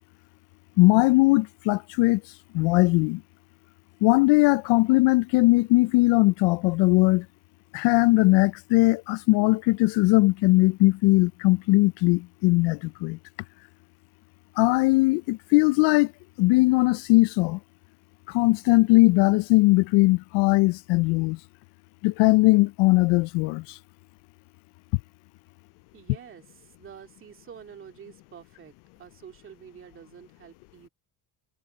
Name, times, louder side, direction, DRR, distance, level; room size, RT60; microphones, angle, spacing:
voice 1, 0.8-2.2 2.5-3.2 4.0-7.3 7.7-13.2 14.6-16.1 16.4-17.6 18.3-21.4 22.0-23.6, left 23 dB, 70° left, 0.5 m, -20 dB
voice 2, 25.9-28.7 29.0-30.9, right 8 dB, 30° right, 2.5 m, -47 dB
cardioid pair, 175°, 44 cm